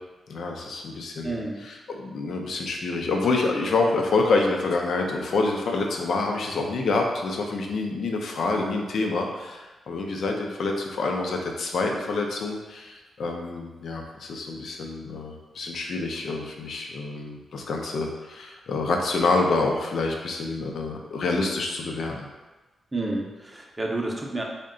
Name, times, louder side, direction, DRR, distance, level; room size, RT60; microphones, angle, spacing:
voice 1, 0.3-22.2, left 3 dB, 70° left, 2 dB, 0.5 m, -27 dB
voice 2, 1.2-1.6 22.9-24.4, right 2 dB, 15° right, -1 dB, 0.6 m, -30 dB
3.6 x 2.2 x 3.7 m, 1.2 s
cardioid pair, 90°, 0 cm